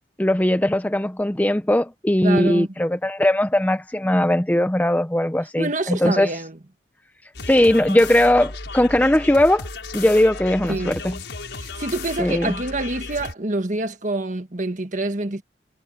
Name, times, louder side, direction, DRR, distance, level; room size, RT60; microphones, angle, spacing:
voice 1, 0.2-6.3 7.5-9.7 9.9-11.2 12.2-12.5, left 1 dB, 10° left, 0.6 m, -19 dB
voice 2, 2.2-2.7 5.6-6.6 10.7-10.9 11.6-15.4, right 2 dB, 45° right, 1.7 m, -26 dB
sound 1, 7.3-13.3, left 3 dB, 85° left, 5.7 m, -34 dB
head